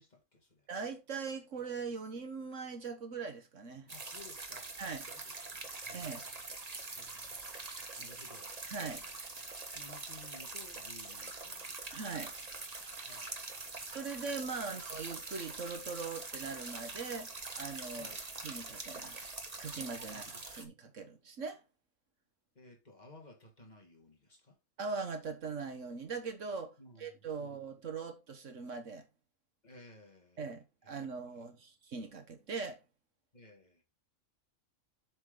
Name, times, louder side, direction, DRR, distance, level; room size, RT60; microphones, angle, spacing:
voice 1, 0.0-0.7 3.9-4.7 5.1-6.3 6.9-7.5 8.0-8.5 8.8-9.1 9.7-11.9 13.0-13.4 14.6-14.8 17.9-18.3 20.1-20.4 22.6-24.6 26.8-27.1 27.4-27.6 29.6-30.4 30.8-31.0 31.3-31.4 33.3-33.8, left 2 dB, 30° left, 2.0 m, -57 dB
voice 2, 0.7-3.9 4.8-5.0 5.9-6.2 8.6-9.0 11.9-12.3 13.9-18.1 18.4-19.3 19.6-21.6 24.8-29.1 30.4-32.8, right 4 dB, 60° right, 1.5 m, -41 dB
sound 1, 3.9-20.7, right 3 dB, 30° right, 1.2 m, -44 dB
7.5 x 5.9 x 3.7 m
omnidirectional pair, 1.5 m